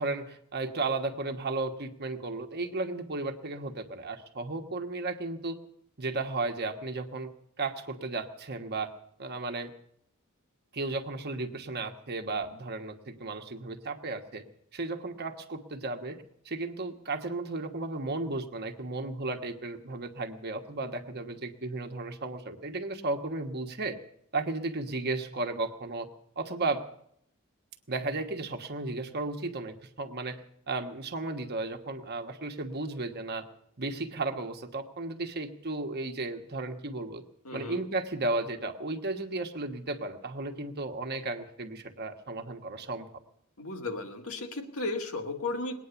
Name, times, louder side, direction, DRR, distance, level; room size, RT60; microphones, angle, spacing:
voice 1, 0.0-5.6 6.0-7.3 7.6-8.9 9.2-9.7 10.7-14.4 14.7-24.0 24.3-26.1 26.4-26.9 27.9-33.4 33.8-37.2 37.5-43.1, right 3 dB, 50° right, 6 dB, 1.3 m, -34 dB
voice 2, 37.5-37.8 43.6-45.7, left 2 dB, 70° left, 4 dB, 1.8 m, -34 dB
20.5 x 9.4 x 6.9 m, 0.70 s
head